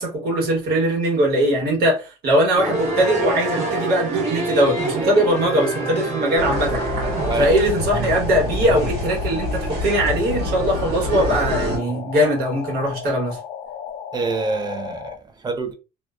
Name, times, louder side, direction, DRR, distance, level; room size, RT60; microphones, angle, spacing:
voice 1, 0.0-6.8 7.4-13.4, right 1 dB, 65° right, 1.2 m, -20 dB
sound 1, 2.6-7.5, right 2 dB, 45° right, 1.1 m, -25 dB
sound 2, 6.4-15.2, left 8 dB, 55° left, 0.4 m, -35 dB
sound 3, 6.4-11.8, equal, 85° right, 1.4 m, -26 dB
voice 2, 14.1-15.7, right 3 dB, 25° right, 0.5 m, -26 dB
2.4 x 2.2 x 2.3 m
cardioid pair, 110°, 17 cm